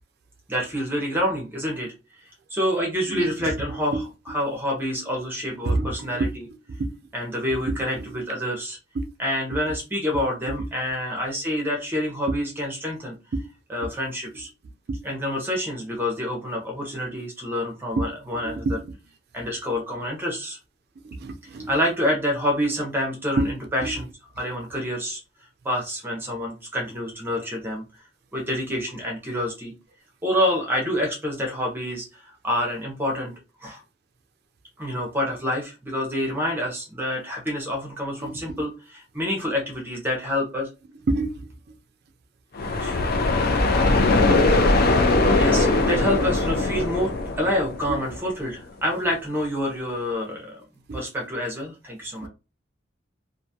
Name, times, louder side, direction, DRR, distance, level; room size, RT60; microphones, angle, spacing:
voice 1, 0.5-1.9 2.5-6.5 7.1-8.8 9.2-13.1 13.7-14.5 15.0-18.8 19.3-20.6 21.7-24.1 24.4-25.2 25.6-27.9 28.3-29.7 30.2-33.3 33.6-33.8 34.8-40.7 42.8-43.0 45.3-50.6 50.9-52.3, left 1 dB, 10° right, 0.6 m, -27 dB
voice 2, 3.1-3.5 3.9-4.0 5.6-6.3 6.8-6.9 7.7-7.8 9.0-9.1 9.5-9.6 10.5-10.7 12.3-12.4 13.3-13.4 14.9-15.0 18.0-18.1 18.4-18.8 21.0-21.7 23.4-23.5 23.8-23.9 38.2-38.6 41.1-41.4 44.3-44.4 44.9-45.0 45.3-45.4 47.9-48.0 50.9-51.0 52.2-52.3, right 2 dB, 60° right, 0.4 m, -27 dB
sound 1, 42.6-48.3, left 2 dB, 55° left, 0.4 m, -21 dB
2.5 x 2.2 x 2.7 m
head